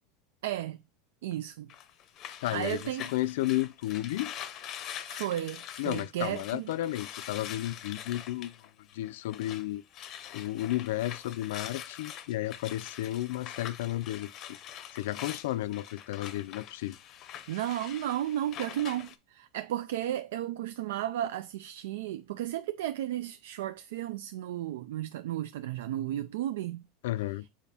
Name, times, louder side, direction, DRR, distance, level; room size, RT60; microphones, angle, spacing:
voice 1, 0.4-0.8 1.2-1.7 2.5-3.1 5.1-6.7 17.5-26.8, right 12 dB, 85° right, 0.4 m, -34 dB
sound 1, 1.7-9.7 9.9-19.1, left 10 dB, 30° left, 0.6 m, -44 dB
voice 2, 2.4-2.8 3.1-4.3 5.8-8.5 8.9-9.8 10.3-14.3 14.9-17.0 27.0-27.5, left 15 dB, 70° left, 0.3 m, -32 dB
7.1 x 4.9 x 2.7 m
supercardioid pair, 180°, 0 cm